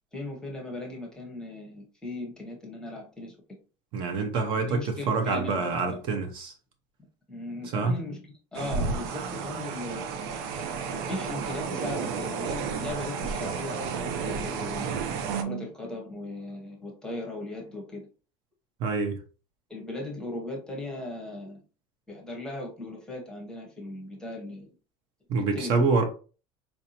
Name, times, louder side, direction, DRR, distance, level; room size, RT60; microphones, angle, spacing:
voice 1, 0.1-3.4 4.5-6.0 7.3-14.9 15.4-18.1 19.7-21.6 22.1-24.7 25.4-25.9, left 2 dB, 5° left, 0.8 m, -38 dB
voice 2, 3.9-4.8 5.1-6.5 7.7-8.0 15.3-15.7 18.8-19.2 25.3-26.0, right 4 dB, 45° right, 0.7 m, -26 dB
sound 1, 8.5-15.4, right 5 dB, 85° right, 0.6 m, -32 dB
4.3 x 2.6 x 2.8 m
cardioid pair, 175°, 12 cm